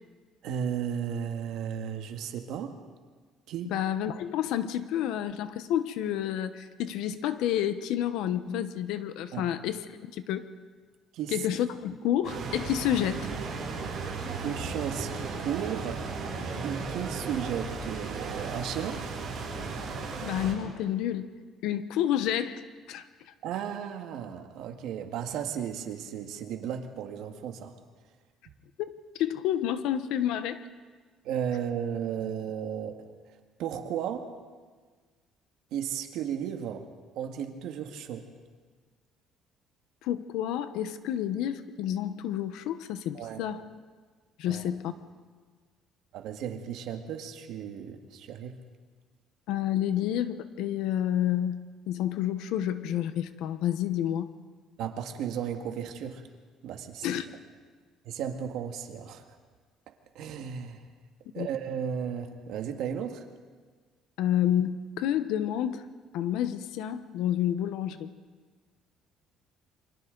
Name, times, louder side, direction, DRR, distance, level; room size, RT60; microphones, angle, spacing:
voice 1, 0.4-2.8 3.5-3.7 9.3-9.5 11.1-11.4 14.4-16.1 16.6-19.0 23.4-27.8 31.2-33.0 33.6-34.3 35.7-36.9 37.2-38.3 43.1-43.4 44.5-44.6 46.1-48.6 54.8-56.2 56.6-57.1 58.1-59.3 60.2-60.8 61.3-63.3, right 8 dB, 65° right, 5 dB, 1.7 m, -34 dB
voice 2, 3.6-9.8 10.1-10.5 11.3-13.3 20.2-21.3 21.6-23.1 28.8-28.9 29.2-30.6 40.0-43.6 44.4-44.9 49.5-51.6 51.9-54.3 57.0-57.2 61.4-61.5 64.2-65.9 66.1-68.1, left 11 dB, 75° left, 11 dB, 1.0 m, -29 dB
sound 1, 12.2-20.5, right 4 dB, 30° right, 6.4 m, -35 dB
28.5 x 25.0 x 4.0 m, 1.5 s
cardioid pair, 175°, 0 cm